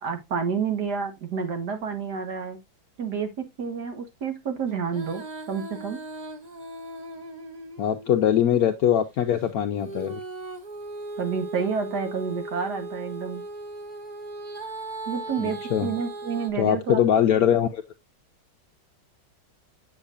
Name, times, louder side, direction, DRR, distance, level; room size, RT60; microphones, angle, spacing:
voice 1, 0.0-2.6 3.0-6.0 11.2-13.4 15.1-17.0, right 6 dB, 60° right, 1.8 m, -29 dB
Female singing, 4.8-8.6 9.8-16.5, right 2 dB, 30° right, 0.9 m, -38 dB
voice 2, 7.8-10.2 15.4-15.9 16.5-17.8, left 9 dB, 70° left, 0.9 m, -22 dB
8.5 x 6.5 x 2.5 m
omnidirectional pair, 2.1 m